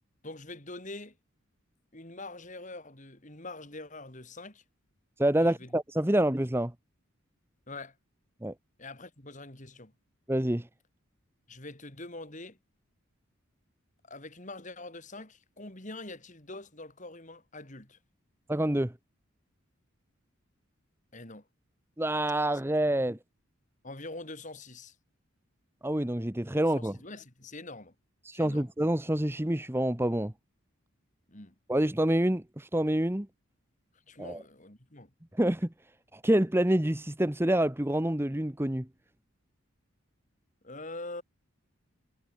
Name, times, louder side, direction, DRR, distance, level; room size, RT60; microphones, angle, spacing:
voice 1, 0.2-1.2 1.9-4.6 5.4-5.7 7.7-8.0 8.8-9.9 11.5-12.6 14.0-18.0 21.1-21.5 23.8-25.0 26.8-27.9 28.3-28.7 31.3-31.6 34.1-35.1 40.6-41.2, left 2 dB, 35° left, 3.5 m, -44 dB
voice 2, 5.2-6.7 8.4-8.5 10.3-10.7 18.5-18.9 22.0-23.2 25.8-27.0 28.2-30.3 31.7-33.3 34.2-34.4 35.3-35.7 36.1-38.9, right 1 dB, 10° right, 0.9 m, -27 dB
head